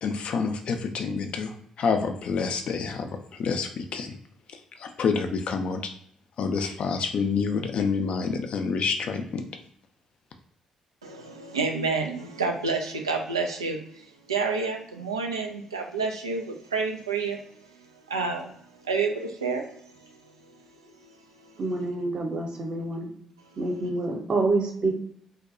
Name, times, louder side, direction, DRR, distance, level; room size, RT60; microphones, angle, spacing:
voice 1, 0.0-4.2 4.5-5.9 6.4-9.4, left 5 dB, 55° left, 6 dB, 0.4 m, -28 dB
voice 2, 11.0-17.4 18.1-18.6 18.8-20.1 21.4-21.5, right 4 dB, 85° right, 3 dB, 0.3 m, -29 dB
voice 3, 21.6-23.1 23.6-24.9, right 2 dB, 45° right, 1 dB, 0.7 m, -27 dB
2.7 x 2.2 x 2.5 m, 0.66 s
figure-of-eight pair, 40°, 2 cm